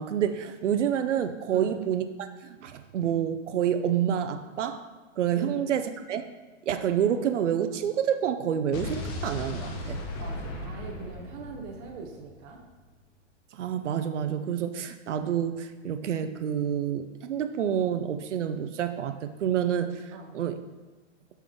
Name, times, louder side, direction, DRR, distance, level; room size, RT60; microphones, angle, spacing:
voice 1, 0.0-4.9 5.2-6.2 6.7-10.0 13.5-20.6, right 9 dB, 70° right, 9 dB, 0.6 m, -28 dB
Explosion, 8.7-12.8, left 1 dB, 25° left, 0.7 m, -37 dB
voice 2, 10.2-12.6 20.1-20.3, right 4 dB, 30° right, -1 dB, 0.8 m, -41 dB
6.0 x 5.7 x 3.5 m, 1.3 s
hypercardioid pair, 125°, 37 cm